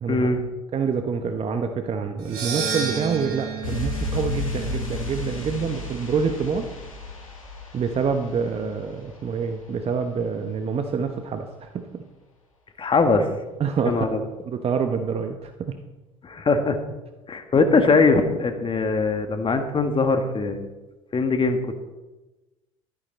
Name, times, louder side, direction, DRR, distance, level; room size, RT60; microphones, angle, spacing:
voice 1, 0.1-0.4 12.8-13.3 13.8-14.2 16.2-16.8 17.3-20.7 21.1-21.8, left 3 dB, 30° left, 7 dB, 1.6 m, -21 dB
voice 2, 0.7-6.7 7.7-12.0 13.6-14.0 14.5-15.7, right 6 dB, 35° right, 6 dB, 1.0 m, -26 dB
sound 1, 2.2-6.5, right 6 dB, 65° right, 2.8 m, -33 dB
sound 2, 3.6-10.1 10.4-10.5, left 3 dB, 90° left, 1.9 m, -34 dB
12.0 x 11.0 x 4.1 m, 1.1 s
hypercardioid pair, 65°, 17 cm